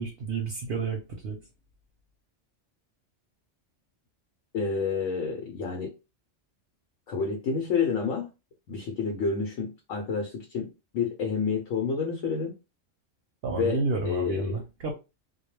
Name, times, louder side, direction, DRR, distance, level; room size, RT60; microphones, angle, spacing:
voice 1, 0.0-1.4 13.4-14.9, right 3 dB, 60° right, 3 dB, 0.7 m, -30 dB
voice 2, 4.5-5.9 7.1-8.3 8.7-12.5 13.5-14.6, left 5 dB, 80° left, 1 dB, 1.0 m, -29 dB
2.2 x 2.2 x 3.0 m, 0.27 s
omnidirectional pair, 1.3 m